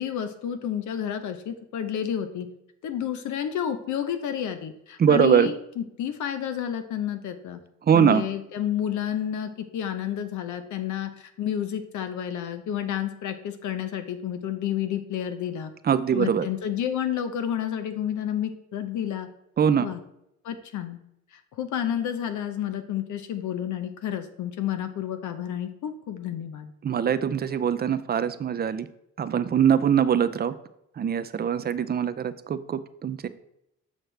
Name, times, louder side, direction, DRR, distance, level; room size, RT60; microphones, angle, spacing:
voice 1, 0.0-2.5 2.8-7.6 7.9-15.7 16.1-19.3 19.8-20.0 20.4-21.0 21.3-26.7, left 10 dB, 75° left, 8 dB, 0.8 m, -30 dB
voice 2, 5.0-5.5 7.8-8.2 15.8-16.5 19.6-19.9 26.8-28.9 29.2-30.5 31.0-33.3, right 8 dB, 30° right, 12 dB, 0.5 m, -22 dB
6.5 x 6.3 x 3.3 m, 0.81 s
cardioid pair, 90°, 30 cm